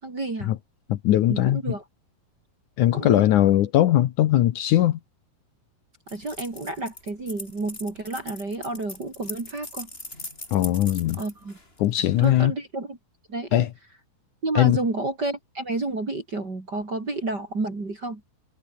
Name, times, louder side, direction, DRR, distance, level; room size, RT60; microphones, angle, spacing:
voice 1, 0.0-0.5 1.3-1.8 2.9-3.3 6.1-9.9 11.2-11.6 12.0-13.0 13.3-13.7 14.4-18.2, right 2 dB, 30° right, 4.4 m, -30 dB
voice 2, 0.9-1.7 2.8-5.0 10.5-11.2 11.8-12.5 13.5-13.7 14.6-14.8, left 13 dB, 70° left, 2.3 m, -20 dB
sound 1, 6.1-12.3, left 2 dB, 15° left, 6.4 m, -40 dB
omnidirectional pair, 3.9 m